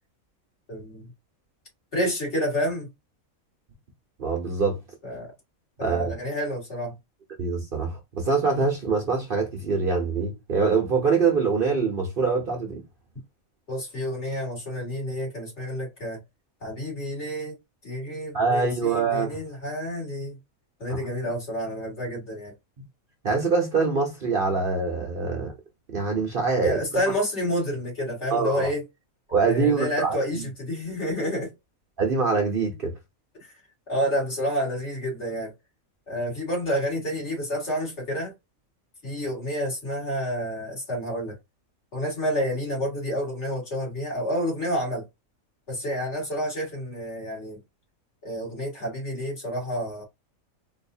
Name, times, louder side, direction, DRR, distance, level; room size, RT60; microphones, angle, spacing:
voice 1, 0.7-1.1 1.9-2.9 5.0-5.3 5.8-6.9 13.7-16.2 16.6-17.6 17.8-20.4 20.8-22.5 26.6-28.8 29.4-31.5 33.9-35.5 36.1-38.3 39.0-41.4 41.9-45.0 45.7-47.6 48.2-50.0, equal, 55° left, 2.5 m, -29 dB
voice 2, 4.2-4.8 5.8-6.1 7.4-12.8 18.3-19.4 23.2-25.5 25.9-26.8 28.3-28.7 29.3-30.4 32.0-32.9, right 4 dB, 45° right, 0.9 m, -24 dB
4.1 x 2.6 x 2.6 m
omnidirectional pair, 1.4 m